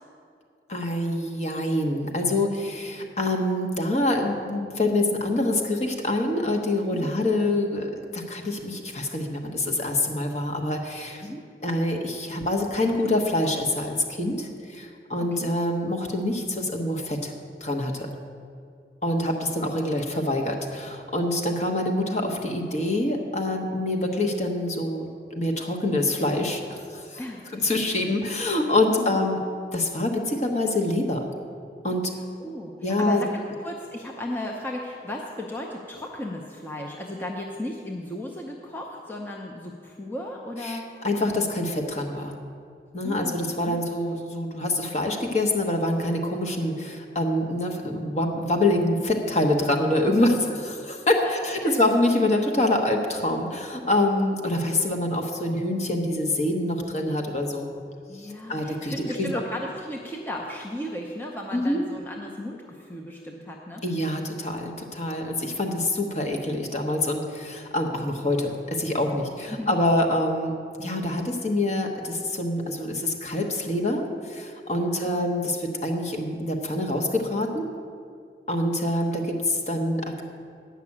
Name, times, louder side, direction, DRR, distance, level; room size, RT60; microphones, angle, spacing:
voice 1, 0.7-11.2 11.6-17.3 17.6-18.1 19.0-25.1 25.4-27.2 27.5-29.4 29.7-31.3 31.8-32.1 32.8-33.2 40.6-42.4 42.9-50.3 50.6-57.7 58.2-59.3 61.5-61.8 63.8-70.5 70.8-77.7 78.5-80.2, left 1 dB, 40° left, 2 dB, 1.0 m, -26 dB
voice 2, 27.2-27.6 27.9-28.2 28.9-29.2 32.1-40.9 43.0-43.8 50.1-50.4 50.8-50.9 51.2-51.9 58.1-63.8 69.5-69.8 74.7-75.1, left 1 dB, 10° left, -1 dB, 0.6 m, -35 dB
9.6 x 5.9 x 8.5 m, 2.4 s
head